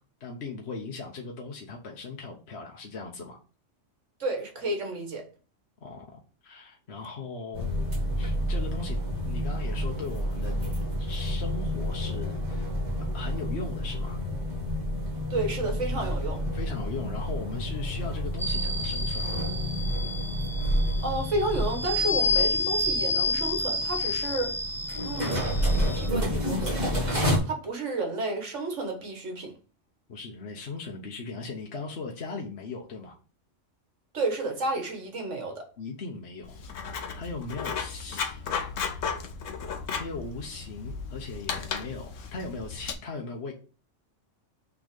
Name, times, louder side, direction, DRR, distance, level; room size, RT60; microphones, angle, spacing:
voice 1, 0.2-3.4 5.8-7.8 8.2-9.0 9.2-10.7 11.0-12.7 13.0-14.2 16.5-19.4 30.1-33.2 35.8-38.7 39.5-39.6 39.9-43.5, left 4 dB, 60° left, 1.2 m, -38 dB
voice 2, 4.2-5.3 15.3-16.4 21.0-24.6 25.0-25.4 26.0-27.0 27.5-29.5 34.1-35.6, right 2 dB, 75° right, 1.8 m, -31 dB
sound 1, 7.5-27.4, equal, 35° right, 1.8 m, -30 dB
sound 2, 18.4-26.1, left 2 dB, 5° left, 0.4 m, -30 dB
Writing, 36.4-42.9, left 6 dB, 85° left, 1.2 m, -35 dB
6.2 x 3.7 x 5.2 m
omnidirectional pair, 1.3 m